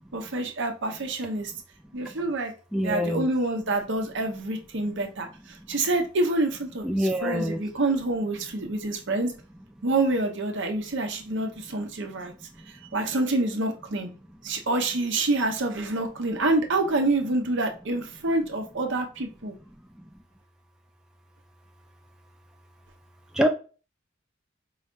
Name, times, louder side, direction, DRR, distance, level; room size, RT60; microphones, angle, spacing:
voice 1, 0.1-1.5 1.9-2.5 2.8-9.3 9.8-12.3 12.9-14.1 14.4-19.5, right 2 dB, 65° right, 0.9 m, -27 dB
voice 2, 2.7-3.3 6.8-7.6 23.4-23.5, equal, 5° right, 0.4 m, -25 dB
4.8 x 3.2 x 2.6 m
head